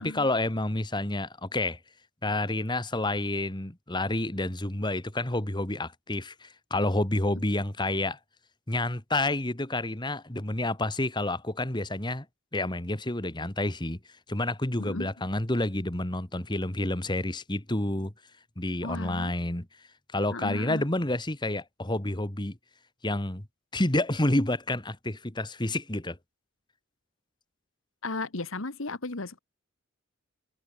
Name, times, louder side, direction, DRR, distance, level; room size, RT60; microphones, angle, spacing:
voice 1, 0.0-1.8 2.2-8.2 8.7-12.3 12.5-14.0 14.3-18.1 18.6-19.7 20.1-22.6 23.0-23.5 23.7-26.2, left 1 dB, 20° left, 2.0 m, -29 dB
voice 2, 14.8-15.1 18.8-19.3 20.3-20.8 28.0-29.4, left 3 dB, 75° left, 1.7 m, -35 dB
head